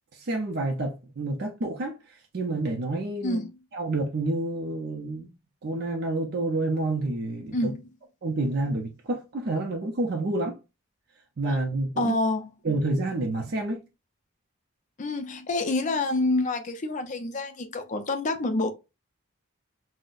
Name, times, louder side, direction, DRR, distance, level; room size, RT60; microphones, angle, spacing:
voice 1, 0.1-3.4 3.7-5.3 5.6-7.7 8.2-10.6 11.4-12.1 12.6-13.8, right 2 dB, 45° right, 0.5 m, -29 dB
voice 2, 12.0-12.5 15.0-18.7, left 2 dB, 35° left, 0.4 m, -27 dB
3.8 x 2.0 x 2.4 m
head